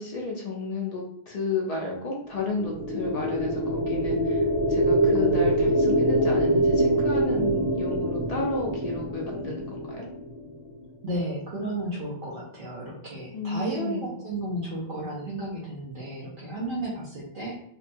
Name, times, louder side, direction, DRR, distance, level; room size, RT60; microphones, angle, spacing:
voice 1, 0.0-10.0 13.3-14.2, left 3 dB, 50° left, -2 dB, 0.5 m, -32 dB
sound 1, 2.5-10.6, right 1 dB, 5° left, 0.9 m, -24 dB
voice 2, 11.0-17.6, right 1 dB, 60° right, -5 dB, 0.8 m, -33 dB
2.7 x 2.2 x 2.5 m, 0.69 s
omnidirectional pair, 1.0 m